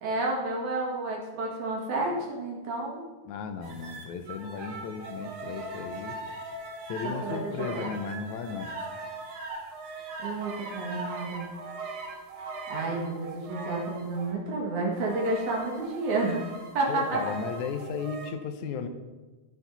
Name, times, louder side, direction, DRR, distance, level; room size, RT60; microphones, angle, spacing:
voice 1, 0.0-3.0 7.0-7.9 10.2-11.5 12.7-16.4 16.7-17.2, right 2 dB, 80° right, -2 dB, 3.4 m, -30 dB
voice 2, 3.3-6.2 6.9-8.7 16.9-18.9, left 6 dB, 85° left, 7 dB, 2.2 m, -35 dB
sound 1, 3.6-14.3 15.0-18.3, right 3 dB, 60° right, 2.4 m, -40 dB
13.5 x 7.1 x 4.0 m, 1.2 s
omnidirectional pair, 3.3 m